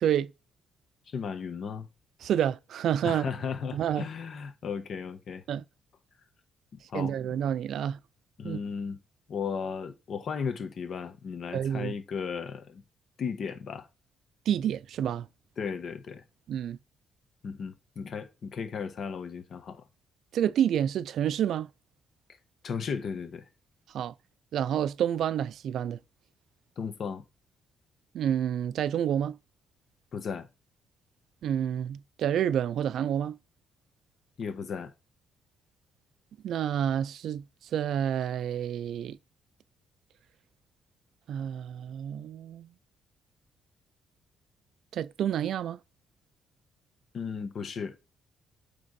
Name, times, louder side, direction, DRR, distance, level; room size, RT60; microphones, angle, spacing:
voice 1, 0.0-0.3 2.2-3.2 3.7-4.1 5.5-5.6 6.9-8.0 8.4-8.6 11.5-11.9 14.5-15.3 16.5-16.8 20.3-21.7 23.9-24.1 24.5-26.0 28.1-29.4 31.4-33.4 36.4-37.4 37.7-39.2 41.3-42.7 44.9-45.8, right 9 dB, 70° right, 0.4 m, -29 dB
voice 2, 1.1-1.9 3.0-5.4 6.7-7.1 8.4-9.0 9.3-12.8 13.2-13.9 15.6-16.2 17.4-19.8 22.6-23.5 26.8-27.2 30.1-30.5 34.4-34.9 47.1-47.9, left 6 dB, 55° left, 1.4 m, -35 dB
8.6 x 3.5 x 4.1 m
cardioid pair, 90°, 0 cm